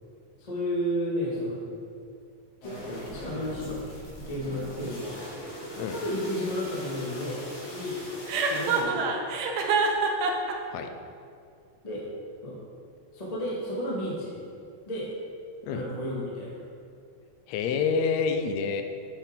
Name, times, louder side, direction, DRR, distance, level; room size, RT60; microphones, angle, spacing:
voice 1, 0.4-1.6 2.6-3.8 4.3-5.2 5.7-8.0 8.5-9.1 11.8-12.1 12.4-12.6 13.1-14.4 14.9-15.1 15.7-16.6, equal, 25° left, -5 dB, 0.9 m, -32 dB
sound 1, 2.6-8.8, equal, 60° left, 3.7 m, -41 dB
Chuckle chortle, 8.3-10.5, right 5 dB, 70° right, 1.8 m, -25 dB
voice 2, 17.5-18.8, left 5 dB, 80° left, 7 dB, 1.6 m, -27 dB
9.6 x 7.2 x 3.8 m, 2.4 s
omnidirectional pair, 3.7 m